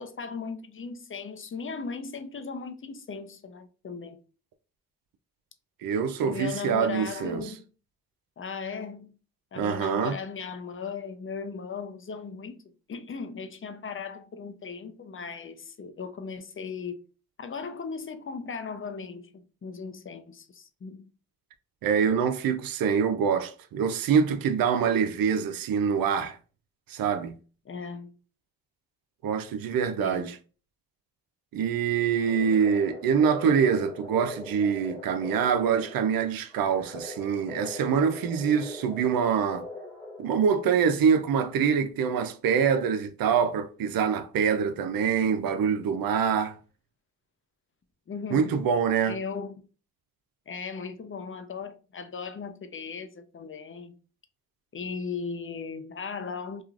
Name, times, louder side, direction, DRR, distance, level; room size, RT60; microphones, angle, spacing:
voice 1, 0.0-4.2 6.2-7.7 8.4-9.1 9.5-17.0 17.4-21.1 27.6-28.2 30.0-30.4 48.1-48.6 49.1-49.7 50.5-54.0 54.7-56.6, left 5 dB, 35° left, 0.6 m, -37 dB
voice 2, 5.8-7.5 9.6-10.1 21.8-26.4 26.9-27.4 29.2-30.4 31.5-39.6 40.2-46.6 48.3-49.2, right 7 dB, 65° right, 0.5 m, -25 dB
sound 1, 32.2-40.6, left 2 dB, 10° left, 1.2 m, -42 dB
3.1 x 2.3 x 2.4 m
supercardioid pair, 40°, 37 cm